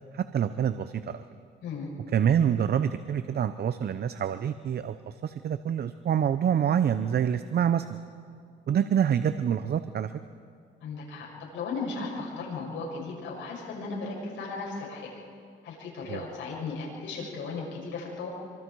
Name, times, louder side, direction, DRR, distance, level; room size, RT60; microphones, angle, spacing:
voice 1, 0.1-1.2 2.1-7.9 8.7-10.1 16.1-16.2, right 8 dB, 55° right, 12 dB, 0.7 m, -26 dB
voice 2, 10.8-11.3 11.5-15.1 15.6-18.3, left 4 dB, 75° left, -3 dB, 6.9 m, -36 dB
26.0 x 24.5 x 4.7 m, 2.2 s
cardioid pair, 90°, 20 cm